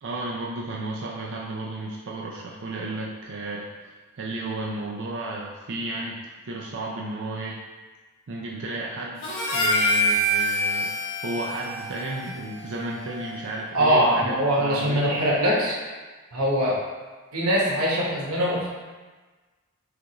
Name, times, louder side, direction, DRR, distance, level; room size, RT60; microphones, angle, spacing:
voice 1, 0.0-6.2 6.5-7.6 8.3-9.2 9.5-10.9 11.2-15.2, right 2 dB, 55° right, -3 dB, 0.5 m, -33 dB
Harmonica, 9.2-13.7, equal, 55° left, 0.8 m, -26 dB
voice 2, 13.7-15.7 16.3-16.8 17.3-18.7, equal, 85° right, -5 dB, 1.2 m, -22 dB
6.2 x 2.5 x 3.0 m, 1.3 s
head